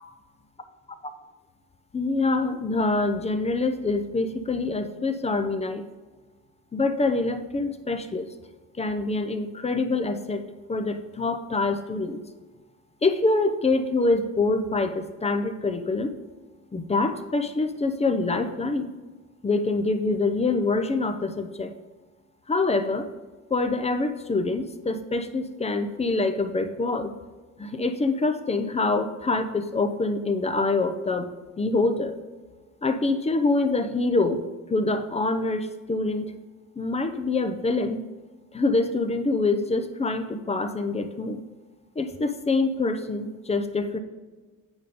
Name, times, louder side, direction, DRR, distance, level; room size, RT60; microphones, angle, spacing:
voice 1, 1.9-5.8 6.7-8.3 8.8-10.4 10.7-12.2 13.0-16.1 16.7-18.9 19.4-21.7 22.5-23.1 23.5-27.1 27.6-31.3 31.6-32.1 32.8-34.4 34.7-36.3 36.8-38.0 38.5-41.4 42.0-44.0, left 3 dB, 20° left, 8 dB, 0.6 m, -25 dB
8.9 x 5.3 x 3.7 m, 1.3 s
cardioid pair, 120°, 32 cm